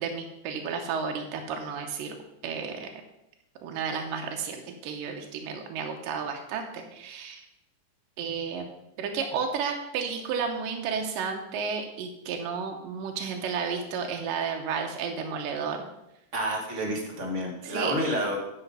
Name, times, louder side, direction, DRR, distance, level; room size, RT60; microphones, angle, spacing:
voice 1, 0.0-2.2 2.4-2.9 3.6-7.5 8.2-8.7 9.0-15.9 17.6-18.0, right 6 dB, 85° right, 3 dB, 2.5 m, -32 dB
voice 2, 16.3-18.4, equal, 35° right, 0 dB, 1.1 m, -29 dB
9.8 x 5.5 x 5.4 m, 0.88 s
omnidirectional pair, 3.8 m